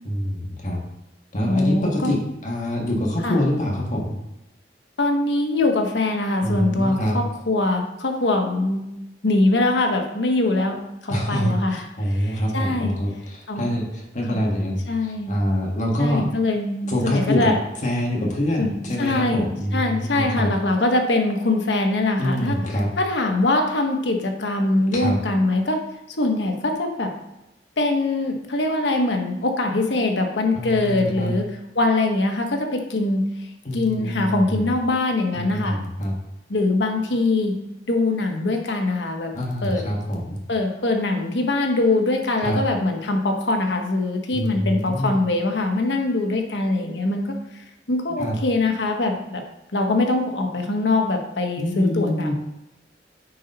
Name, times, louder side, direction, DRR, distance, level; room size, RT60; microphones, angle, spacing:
voice 1, 0.0-0.8 1.3-4.1 6.4-7.2 11.1-16.3 16.9-17.5 17.8-20.5 22.2-22.9 24.9-25.1 30.5-31.3 33.6-34.6 35.3-36.1 39.3-40.4 42.4-42.6 44.3-45.2 48.2-48.3 51.6-52.3, equal, 45° left, -1 dB, 1.6 m, -25 dB
voice 2, 1.4-2.1 3.2-3.4 5.0-8.9 9.2-13.0 13.5-13.7 14.3-14.4 14.9-15.4 16.0-17.6 18.6-22.6 23.0-25.8 26.2-27.1 27.8-31.5 31.7-33.3 33.7-35.8 36.5-37.5 37.9-39.3 39.6-39.8 40.5-49.4 49.7-52.3, left 2 dB, 75° left, 3 dB, 1.2 m, -23 dB
8.4 x 4.0 x 5.4 m, 0.92 s
head